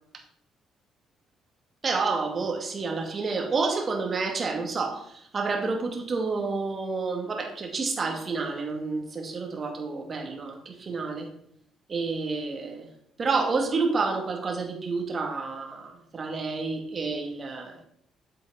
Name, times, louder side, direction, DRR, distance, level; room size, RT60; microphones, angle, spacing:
voice 1, 1.8-11.3 11.9-12.9 13.2-17.8, right 4 dB, 40° right, 2 dB, 2.4 m, -29 dB
8.0 x 7.6 x 4.2 m, 0.69 s
hypercardioid pair, 45°, 0 cm